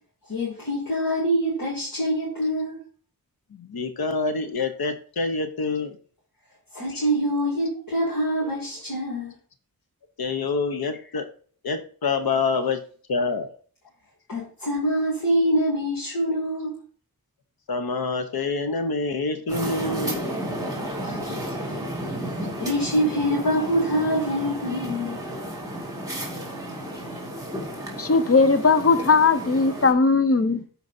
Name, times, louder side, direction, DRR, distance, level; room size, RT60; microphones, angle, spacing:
voice 1, 0.3-2.8 6.7-9.3 14.3-16.7 21.0-21.3 22.6-25.2, equal, 65° left, 2.6 m, -25 dB
voice 2, 3.5-6.0 6.9-7.0 10.2-11.3 11.6-12.8 13.1-13.5 17.7-20.3 20.8-21.4 22.4-22.5, left 4 dB, 80° left, 0.9 m, -27 dB
sound 1, 19.5-29.9, equal, 10° right, 2.1 m, -32 dB
voice 3, 27.9-30.6, left 4 dB, 40° left, 0.7 m, -19 dB
13.5 x 4.6 x 2.7 m
wide cardioid pair, 80°, 36 cm